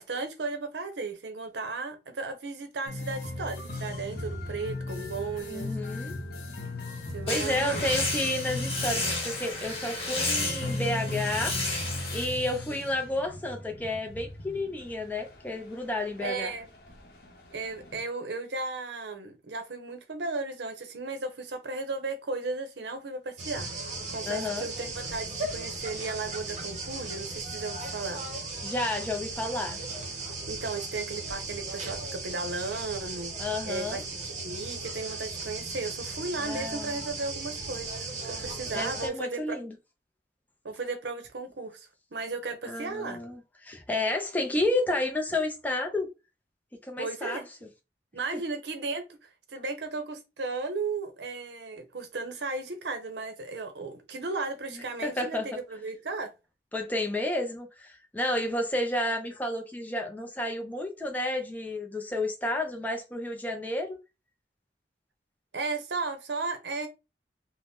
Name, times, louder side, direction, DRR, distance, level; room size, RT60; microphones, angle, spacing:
voice 1, 0.0-5.7 7.1-7.8 16.2-16.7 17.5-23.7 24.1-28.2 30.5-33.3 33.6-38.0 38.3-39.6 40.6-43.2 47.0-47.5 48.1-49.1 49.5-56.3 65.5-66.9, right 3 dB, 75° right, 0.7 m, -35 dB
sound 1, 2.9-18.0, left 2 dB, 55° left, 0.7 m, -38 dB
voice 2, 5.5-6.2 7.3-11.6 12.1-16.5 24.3-24.7 28.6-29.8 33.4-34.0 36.4-37.0 38.7-39.8 42.7-46.1 46.8-47.4 48.3-48.4 55.0-55.5 56.7-64.0, left 1 dB, 10° left, 0.4 m, -31 dB
sound 2, 7.3-12.3, left 2 dB, 35° left, 1.1 m, -32 dB
sound 3, 23.4-39.1, right 3 dB, 40° right, 0.8 m, -37 dB
2.7 x 2.1 x 3.4 m
head